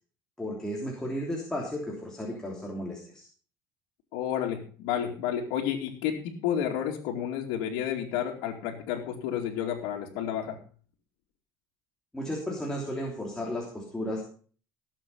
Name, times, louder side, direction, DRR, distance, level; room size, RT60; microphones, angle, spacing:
voice 1, 0.4-3.3 12.1-14.3, equal, 5° left, -2 dB, 3.2 m, -34 dB
voice 2, 4.1-10.6, left 9 dB, 90° left, -5 dB, 2.6 m, -31 dB
18.0 x 7.7 x 5.4 m, 0.43 s
cardioid pair, 135°, 9 cm